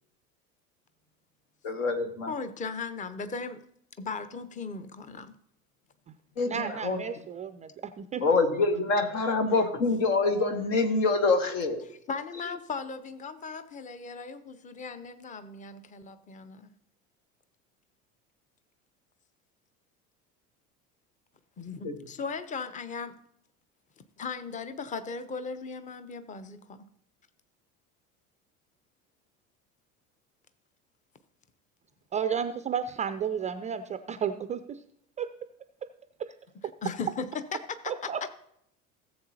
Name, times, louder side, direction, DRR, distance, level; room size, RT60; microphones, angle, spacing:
voice 1, 1.6-2.3 6.4-7.0 8.2-11.8 21.8-22.0, left 3 dB, 60° left, 7 dB, 1.6 m, -26 dB
voice 2, 2.3-3.6 4.0-5.3 11.8-16.7 21.6-23.1 24.2-26.9 36.8-38.1, left 4 dB, 15° left, 12 dB, 0.8 m, -37 dB
voice 3, 6.5-8.2 32.1-34.8 35.2-35.3 36.2-36.3 36.6-36.7 37.9-38.3, right 7 dB, 20° right, 11 dB, 0.4 m, -33 dB
17.5 x 7.7 x 2.8 m, 0.71 s
figure-of-eight pair, 70°, 43 cm